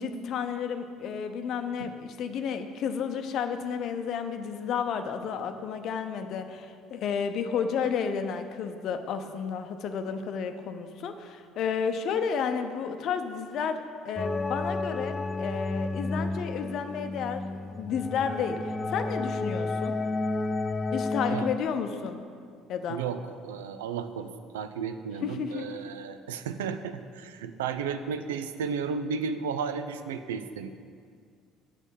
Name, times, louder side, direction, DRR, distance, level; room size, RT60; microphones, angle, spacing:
voice 1, 0.0-19.9 20.9-22.2 22.7-23.0 25.2-25.7, left 6 dB, 55° left, 8 dB, 0.7 m, -32 dB
sound 1, 14.2-21.6, left 2 dB, 25° left, 0.4 m, -31 dB
voice 2, 22.9-30.7, right 6 dB, 75° right, 10 dB, 0.4 m, -33 dB
8.2 x 6.2 x 7.2 m, 2.2 s
figure-of-eight pair, 55°, 0 cm